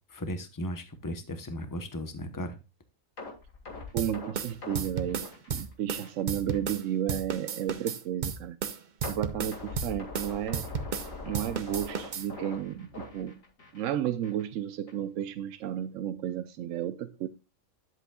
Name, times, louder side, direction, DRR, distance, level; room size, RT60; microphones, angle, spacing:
voice 1, 0.1-2.6, equal, 15° left, 0.9 m, -36 dB
sound 1, 3.2-6.2 6.5-6.7 7.2-7.3 9.0-13.9 14.2-14.4 14.9-15.0, left 3 dB, 80° left, 2.5 m, -42 dB
voice 2, 3.9-8.6 9.1-10.6 11.2-13.4 13.7-17.3, right 10 dB, 75° right, 0.9 m, -33 dB
sound 2, 4.0-6.8 7.1-11.1 11.3-12.3, right 7 dB, 45° right, 0.6 m, -33 dB
11.0 x 7.8 x 2.3 m
omnidirectional pair, 1.4 m